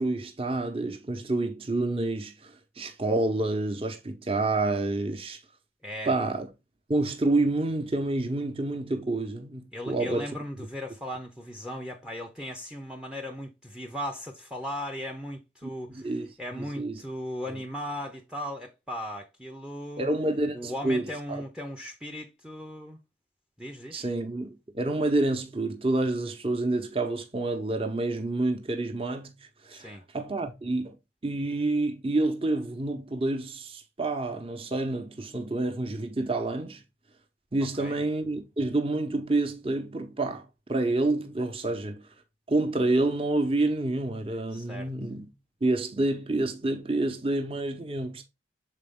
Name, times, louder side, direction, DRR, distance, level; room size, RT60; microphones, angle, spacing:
voice 1, 0.0-5.4 6.1-6.5 6.9-10.4 15.6-16.3 16.5-17.0 20.0-21.4 23.9-29.4 29.6-31.0 31.2-36.8 37.5-42.0 42.5-45.3 45.6-48.2, right 2 dB, 30° right, 1.0 m, -28 dB
voice 2, 5.8-6.1 9.7-16.1 16.4-20.1 20.5-23.0 23.6-24.1 29.7-30.0 37.8-38.0 44.5-44.9, equal, 5° right, 0.6 m, -37 dB
6.6 x 4.3 x 3.7 m
head